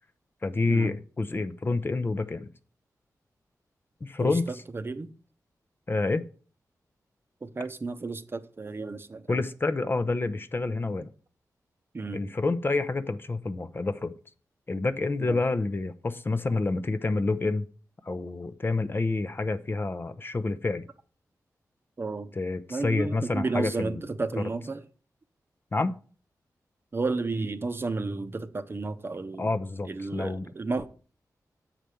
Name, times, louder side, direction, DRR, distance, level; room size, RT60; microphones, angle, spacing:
voice 1, 0.4-2.5 4.0-4.6 5.9-6.2 9.3-11.1 12.1-14.1 14.7-17.7 18.0-20.8 22.4-24.0 24.4-24.5 25.7-25.9 29.4-30.5, left 3 dB, 35° left, 0.6 m, -28 dB
voice 2, 4.7-5.1 7.4-9.4 11.9-12.3 15.2-15.4 22.0-22.3 22.7-24.8 26.9-29.5 29.8-30.9, right 3 dB, 35° right, 0.8 m, -32 dB
7.6 x 4.9 x 6.9 m
wide cardioid pair, 105°, 7 cm